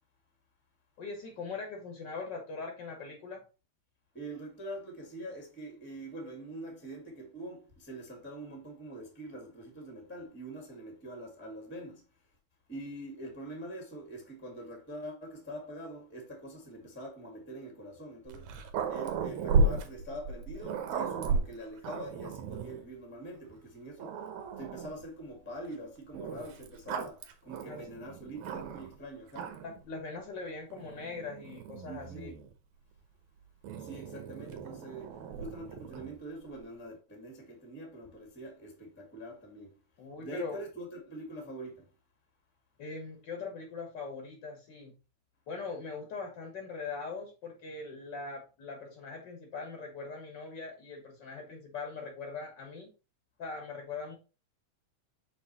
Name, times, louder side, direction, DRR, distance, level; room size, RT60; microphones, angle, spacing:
voice 1, 1.0-3.4 27.6-28.0 29.6-32.3 40.0-40.6 42.8-44.9 45.5-52.9 53.4-54.2, left 4 dB, 50° left, 1.6 m, -41 dB
voice 2, 4.1-12.0 12.7-18.6 18.9-24.2 24.6-29.6 31.8-32.4 33.8-39.8 40.2-41.9, right 1 dB, 5° left, 1.2 m, -44 dB
Growling, 18.3-22.8 23.5-23.6 24.0-25.1 26.1-29.0 29.3-29.8 30.7-32.5 33.6-36.2, right 3 dB, 75° right, 2.2 m, -34 dB
6.3 x 4.1 x 4.1 m
omnidirectional pair, 3.4 m